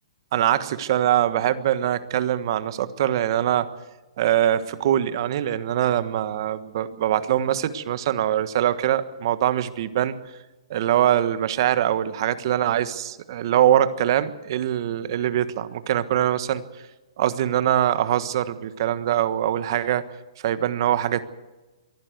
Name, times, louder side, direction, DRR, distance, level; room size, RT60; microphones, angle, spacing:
voice 1, 0.3-3.7 4.2-10.2 10.7-16.6 17.2-20.0 20.4-21.2, right 11 dB, 45° right, 13 dB, 1.4 m, -23 dB
23.5 x 15.5 x 8.1 m, 1.1 s
hypercardioid pair, 160°, 3 cm